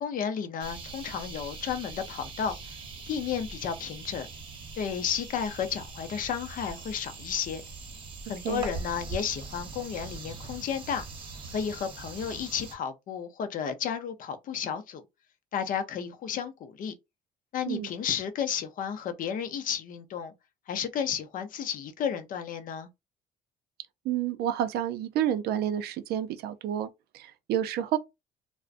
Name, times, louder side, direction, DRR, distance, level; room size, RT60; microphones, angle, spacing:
voice 1, 0.0-2.8 3.1-4.3 4.7-7.6 8.3-11.0 11.5-15.0 15.5-16.9 17.5-20.3 20.7-22.9, left 7 dB, 55° left, 0.5 m, -32 dB
sound 1, 0.6-12.7, right 4 dB, 30° right, 0.9 m, -42 dB
voice 2, 24.1-26.9 27.1-28.0, right 10 dB, 70° right, 0.4 m, -29 dB
2.4 x 2.1 x 2.4 m
cardioid pair, 110°, 17 cm